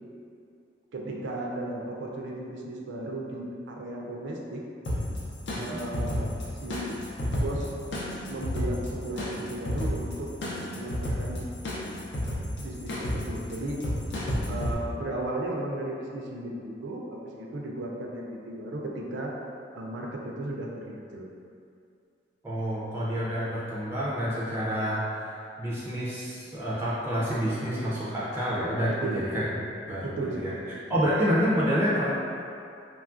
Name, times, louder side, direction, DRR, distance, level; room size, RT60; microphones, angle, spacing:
voice 1, 0.9-4.6 5.5-6.3 6.6-7.0 7.4-7.7 8.3-10.3 10.7-11.5 12.6-13.8 14.5-19.4 19.7-21.3 28.9-29.2 30.0-30.6 30.9-31.0, right 1 dB, 85° right, -1 dB, 0.4 m, -35 dB
sound 1, 4.8-14.7, equal, 75° left, 0.5 m, -32 dB
voice 2, 22.4-29.5 29.9-30.5 30.9-32.1, equal, 15° right, -9 dB, 0.3 m, -28 dB
3.0 x 2.3 x 2.4 m, 2.5 s
head